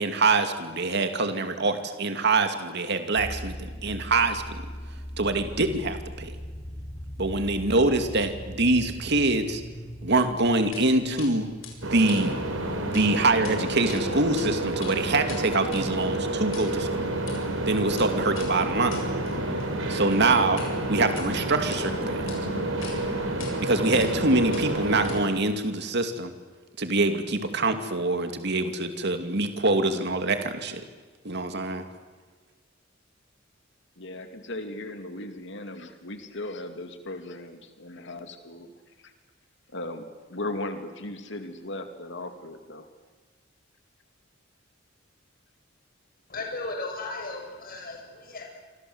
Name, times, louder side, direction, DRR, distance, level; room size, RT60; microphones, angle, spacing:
voice 1, 0.0-4.6 5.2-6.3 7.2-9.6 10.0-11.5 11.8-12.3 12.9-17.2 17.6-19.0 19.9-22.3 23.6-26.3 26.8-30.8 31.2-31.8, right 2 dB, 60° right, 7 dB, 2.5 m, -25 dB
sound 1, 3.2-14.6, equal, 25° left, 5.4 m, -40 dB
sound 2, 10.7-10.9 11.2-11.3 11.6-13.1 13.3-13.5 13.9-14.5 14.7-20.7 21.0-21.8 22.3-22.4 22.8-23.0 23.4-23.5 23.9-24.2 24.5-25.4, left 7 dB, 85° left, 7.6 m, -44 dB
sound 3, 11.8-25.2, right 1 dB, 80° right, 6.0 m, -29 dB
voice 2, 34.0-38.7 39.0-39.1 39.7-40.0 40.3-42.9, left 2 dB, 65° left, 7 dB, 2.5 m, -37 dB
voice 3, 46.3-48.4, left 2 dB, 50° left, 1 dB, 7.7 m, -35 dB
28.5 x 25.0 x 8.0 m, 1.5 s
head